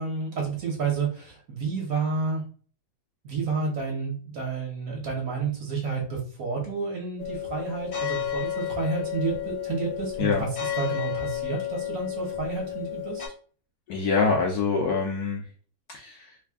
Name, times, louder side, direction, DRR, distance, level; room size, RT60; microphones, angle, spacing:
voice 1, 0.0-2.4 3.2-13.2, right 5 dB, 55° right, 0 dB, 1.2 m, -30 dB
sound 1, 7.2-13.3, left 11 dB, 50° left, 0.6 m, -32 dB
voice 2, 13.9-15.4 15.9-16.2, left 5 dB, 65° left, -1 dB, 1.0 m, -25 dB
3.3 x 2.3 x 3.5 m, 0.42 s
omnidirectional pair, 2.1 m